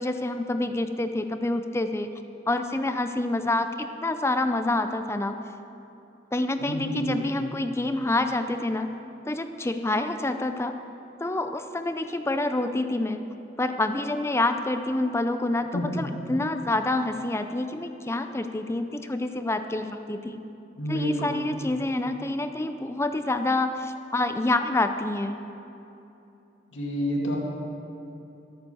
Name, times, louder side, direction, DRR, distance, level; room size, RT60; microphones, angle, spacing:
voice 1, 0.0-2.1 2.5-5.4 6.3-8.9 9.3-10.8 11.2-13.2 13.6-20.4 20.9-25.4, left 2 dB, 15° left, 8 dB, 0.5 m, -27 dB
voice 2, 6.6-7.2 15.7-16.0 20.8-21.4 26.7-27.4, equal, 80° left, -2 dB, 2.5 m, -29 dB
14.0 x 9.2 x 7.0 m, 2.9 s
head